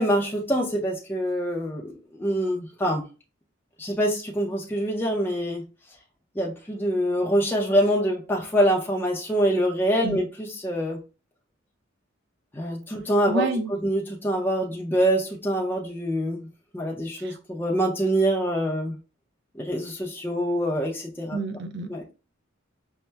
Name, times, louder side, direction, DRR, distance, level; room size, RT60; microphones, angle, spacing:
voice 1, 0.0-3.0 3.8-5.6 6.4-11.0 12.5-13.5 13.8-16.5 16.7-18.9 19.5-21.4 21.9-22.0, equal, 10° left, 0.5 m, -25 dB
voice 2, 13.3-13.7 17.2-17.4 21.3-21.9, right 2 dB, 60° right, 0.5 m, -29 dB
5.4 x 2.1 x 2.2 m
head